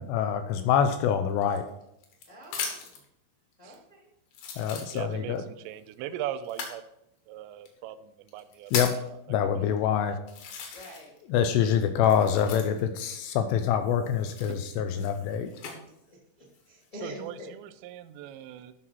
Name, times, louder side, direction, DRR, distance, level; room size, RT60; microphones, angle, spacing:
voice 1, 0.0-1.7 4.6-5.4 8.7-8.9 9.3-10.2 11.3-15.5, left 8 dB, 85° left, 8 dB, 2.4 m, -25 dB
sound 1, 1.4-3.0 3.7-3.8 4.3-5.4 6.4-6.8 7.7-7.8 8.3-9.1 9.8-9.9 10.3-11.2 11.4-13.0 14.2-15.8 16.4-16.9, left 6 dB, 65° left, 3.5 m, -37 dB
voice 2, 2.3-3.0 3.6-4.1 10.7-11.2 15.8-17.5, left 1 dB, 30° left, -4 dB, 1.3 m, -46 dB
voice 3, 4.9-6.8 7.3-9.2 9.6-9.8 17.0-18.7, right 11 dB, 85° right, 10 dB, 2.7 m, -39 dB
12.5 x 5.8 x 4.1 m, 0.79 s
omnidirectional pair, 5.7 m